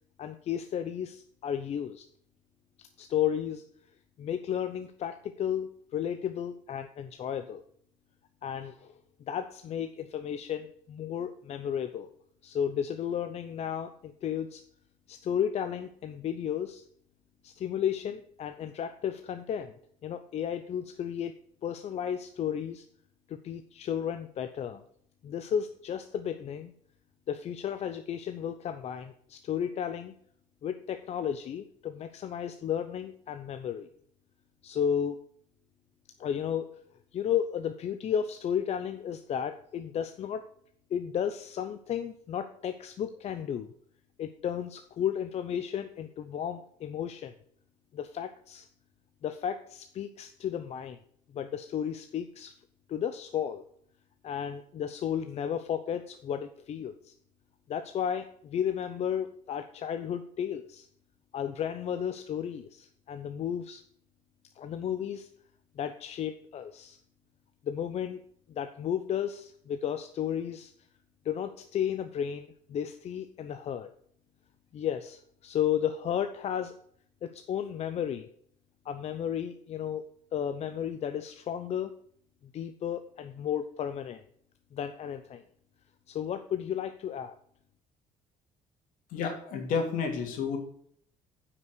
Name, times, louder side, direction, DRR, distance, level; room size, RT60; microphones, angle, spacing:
voice 1, 0.2-2.1 2.8-3.6 4.2-7.6 8.4-8.9 9.3-12.1 12.4-14.6 15.1-16.8 17.4-19.8 20.0-21.3 21.6-22.8 23.3-24.8 25.2-26.7 27.3-30.1 30.6-33.9 34.6-35.2 36.2-36.8 37.1-40.5 40.9-43.7 44.2-47.3 47.9-48.7 49.2-51.0 51.3-52.5 52.9-53.6 54.2-57.1 57.7-60.9 61.3-63.8 64.6-65.3 65.8-67.0 67.6-68.2 68.5-70.7 71.2-73.9 74.7-76.7 77.2-78.3 78.8-80.0 80.3-81.9 82.5-84.2 84.7-85.4 86.1-87.3, left 9 dB, 50° left, 8 dB, 0.7 m, -33 dB
voice 2, 89.1-90.6, left 5 dB, 75° left, 4 dB, 2.6 m, -30 dB
9.3 x 6.0 x 6.2 m, 0.63 s
cardioid pair, 110°, 14 cm